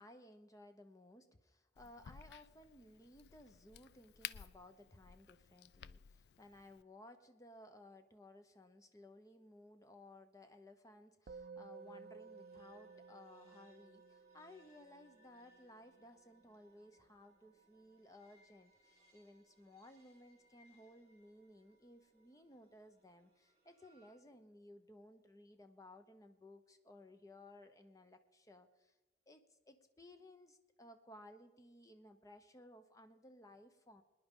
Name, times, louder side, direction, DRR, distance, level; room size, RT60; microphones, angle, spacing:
voice 1, 0.0-28.9 29.3-34.0, left 1 dB, 20° left, 8 dB, 0.7 m, -59 dB
Crack, 1.8-6.8, left 10 dB, 65° left, 0.3 m, -54 dB
Musical instrument, 11.3-20.8, right 5 dB, 50° right, 0.4 m, -58 dB
sound 1, 11.7-24.1, left 1 dB, 20° right, 3.9 m, -73 dB
23.5 x 10.0 x 3.7 m, 1.1 s
head